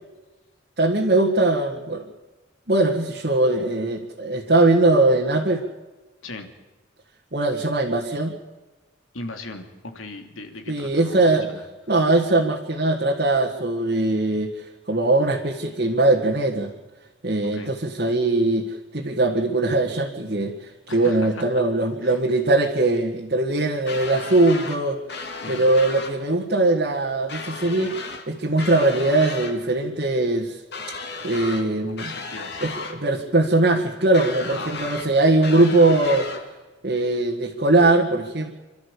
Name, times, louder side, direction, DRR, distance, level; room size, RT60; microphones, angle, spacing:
voice 1, 0.8-2.0 2.7-5.6 7.3-8.4 10.7-11.5 11.9-16.7 17.2-25.0 25.5-30.6 31.2-32.1 32.6-36.3 36.8-38.5, right 2 dB, 50° right, -1 dB, 2.0 m, -21 dB
voice 2, 9.1-11.6 17.4-17.7 20.9-21.4 22.0-22.2 25.4-25.6 31.8-32.6 34.6-34.9, left 2 dB, 85° left, 6 dB, 2.9 m, -38 dB
sound 1, 23.9-24.8 25.1-26.1 27.3-28.3 28.6-29.5 30.7-31.7 32.0-33.0 34.1-35.1 35.4-36.4, left 4 dB, 55° left, 2.6 m, -34 dB
27.5 x 13.0 x 8.5 m, 1.2 s
head